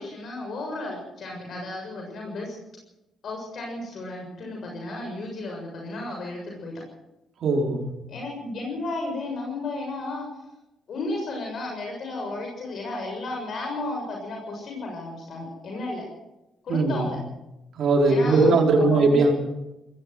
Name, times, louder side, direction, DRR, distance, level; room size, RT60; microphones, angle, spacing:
voice 1, 0.0-2.6 3.2-6.7 8.1-10.2 10.9-16.0 16.6-17.2 18.0-19.2, left 2 dB, 60° left, 1 dB, 6.8 m, -33 dB
voice 2, 7.4-7.9 16.7-17.1 17.8-19.3, right 3 dB, 65° right, 1 dB, 5.1 m, -19 dB
19.5 x 17.0 x 7.9 m, 0.93 s
cardioid pair, 90°, 0 cm